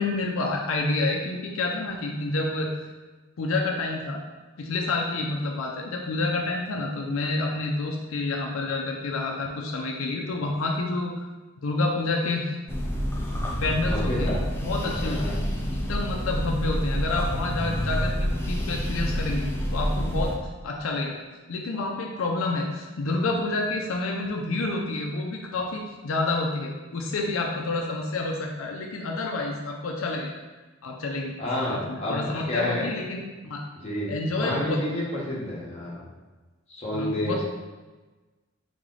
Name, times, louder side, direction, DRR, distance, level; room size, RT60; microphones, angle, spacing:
voice 1, 0.0-2.7 3.4-4.2 4.6-11.3 11.6-12.6 13.6-14.3 14.6-15.4 15.7-20.3 20.6-21.2 21.5-30.3 30.8-31.4 31.7-33.6 34.1-34.8 36.9-37.4, left 2 dB, 85° left, 1 dB, 0.5 m, -28 dB
sound 1, 12.7-20.4, equal, 10° left, 0.4 m, -28 dB
voice 2, 13.9-14.4 14.8-15.4 31.4-32.2 32.5-32.9 33.7-36.1 36.7-37.4, left 1 dB, 30° left, -6 dB, 1.2 m, -30 dB
3.7 x 3.2 x 3.9 m, 1.2 s
head